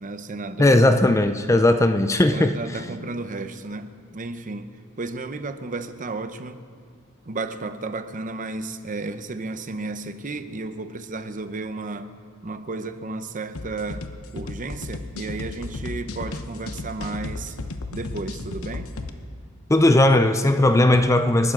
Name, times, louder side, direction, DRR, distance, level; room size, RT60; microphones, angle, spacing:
voice 1, 0.0-1.2 2.2-4.7 5.0-6.6 7.2-12.1 12.4-14.0 14.3-17.6 17.9-18.9, right 3 dB, 40° right, 10 dB, 0.8 m, -33 dB
voice 2, 0.6-2.5 19.7-21.5, left 1 dB, 15° left, 9 dB, 0.5 m, -17 dB
sound 1, 13.6-19.1, left 2 dB, 75° left, 0.9 m, -34 dB
29.0 x 12.0 x 3.8 m, 2.1 s
head